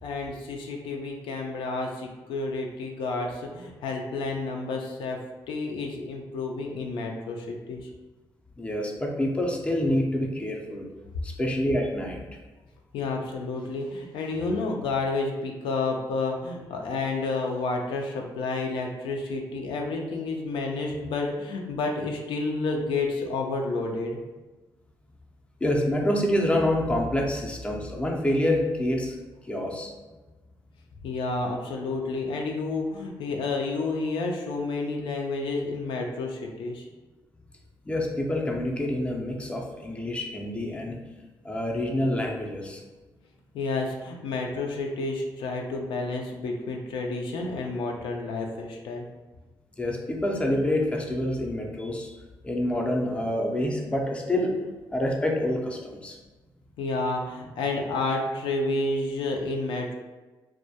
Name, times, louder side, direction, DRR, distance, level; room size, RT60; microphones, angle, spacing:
voice 1, 0.0-5.2 5.5-7.9 12.9-24.2 31.0-36.9 43.5-49.0 56.8-59.9, left 3 dB, 80° left, 1 dB, 0.4 m, -30 dB
voice 2, 8.6-10.8 11.2-12.2 25.6-29.2 29.4-29.9 37.9-41.0 41.4-42.8 49.8-52.1 52.4-54.5 54.9-56.2, left 1 dB, 15° left, 0 dB, 0.4 m, -27 dB
2.2 x 2.1 x 2.7 m, 1.2 s
cardioid pair, 80°, 8 cm